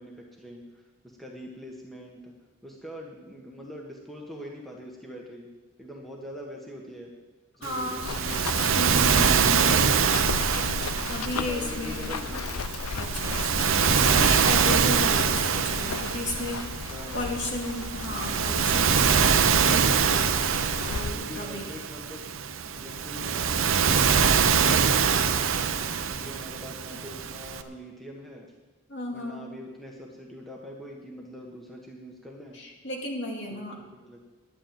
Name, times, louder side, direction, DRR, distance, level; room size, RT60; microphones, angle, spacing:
voice 1, 0.0-2.3 2.6-5.5 5.8-7.1 7.6-8.9 9.4-10.4 11.3-12.6 16.9-17.2 21.1-22.2 22.6-25.5 25.8-28.5 29.1-32.6 33.5-34.2, equal, ahead, -1 dB, 1.4 m, -43 dB
voice 2, 7.6-8.1 8.7-9.7 11.1-12.1 13.0-16.7 17.1-19.9 20.9-21.7 28.9-29.4 32.5-33.8, left 1 dB, 50° left, 0 dB, 2.6 m, -34 dB
Waves surf, 7.6-27.6, right 6 dB, 60° right, 0.8 m, -24 dB
Run, 8.0-21.1, left 4 dB, 80° left, 0.6 m, -35 dB
11.0 x 8.8 x 8.9 m, 1.2 s
head